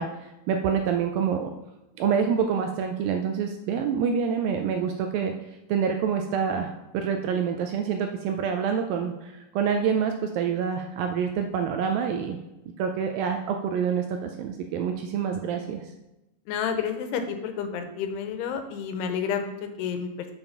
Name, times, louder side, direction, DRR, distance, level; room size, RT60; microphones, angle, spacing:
voice 1, 0.0-1.5 2.0-5.3 5.7-12.4 12.8-15.8, right 7 dB, 80° right, 5 dB, 2.1 m, -27 dB
voice 2, 16.5-20.3, left 7 dB, 90° left, 7 dB, 2.9 m, -30 dB
7.0 x 5.8 x 5.7 m, 0.98 s
omnidirectional pair, 4.6 m